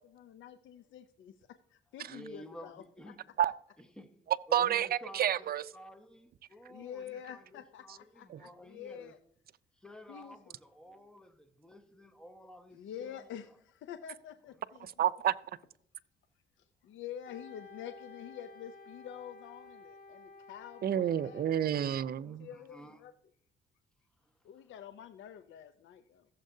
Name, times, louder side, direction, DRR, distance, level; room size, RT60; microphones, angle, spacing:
voice 1, 0.1-1.3 1.7-2.8 6.7-9.2 10.1-10.4 12.7-14.9 16.6-21.5 22.4-23.1 24.4-26.3, left 9 dB, 75° left, 0.6 m, -47 dB
voice 2, 2.1-3.2 3.8-4.1 4.5-9.2 9.8-13.2 22.2-23.0, equal, 5° left, 1.3 m, -52 dB
voice 3, 4.5-5.6 8.3-8.4 14.8-15.3 20.8-22.5, right 10 dB, 50° right, 0.5 m, -29 dB
Wind instrument woodwind instrument, 17.2-22.1, left 3 dB, 50° left, 1.8 m, -53 dB
15.5 x 7.4 x 2.7 m
cardioid pair, 90°, 20 cm